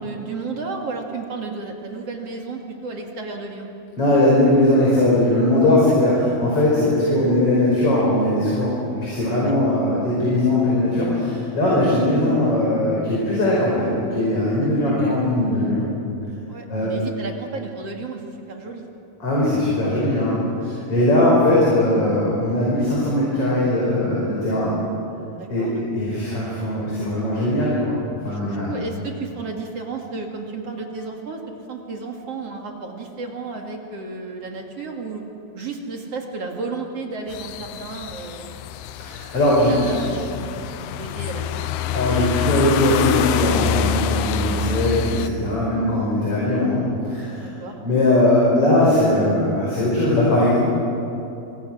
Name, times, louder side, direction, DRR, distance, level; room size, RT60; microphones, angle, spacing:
voice 1, 0.0-3.7 9.4-9.5 11.7-11.9 14.6-14.7 16.5-18.2 18.5-18.8 20.7-20.9 25.3-25.8 28.2-31.4 31.7-35.2 35.5-38.5 39.5-40.7 41.0-41.7 47.4-47.8, right 3 dB, 45° right, 1 dB, 2.8 m, -33 dB
voice 2, 4.0-15.9 16.7-16.9 19.2-24.8 25.5-28.0 28.2-28.7 39.0-39.9 41.9-47.5 47.8-50.6, left 1 dB, 35° left, -6 dB, 6.0 m, -20 dB
sound 1, 37.3-45.3, left 8 dB, 80° left, 2.7 m, -26 dB
26.5 x 25.0 x 6.3 m, 2.9 s
omnidirectional pair, 4.5 m